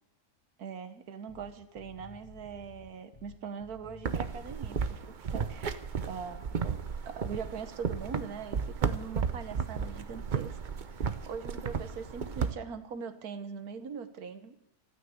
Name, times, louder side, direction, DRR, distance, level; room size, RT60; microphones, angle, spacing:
voice 1, 0.6-5.8 6.1-10.6 10.9-14.6, right 6 dB, 70° right, 10 dB, 1.6 m, -42 dB
sound 1, 1.3-4.5 9.8-10.3 11.7-12.1, left 3 dB, 30° left, 1.3 m, -53 dB
sound 2, 4.0-12.5, right 6 dB, 45° right, 0.6 m, -34 dB
14.5 x 9.5 x 8.5 m, 0.84 s
omnidirectional pair, 1.6 m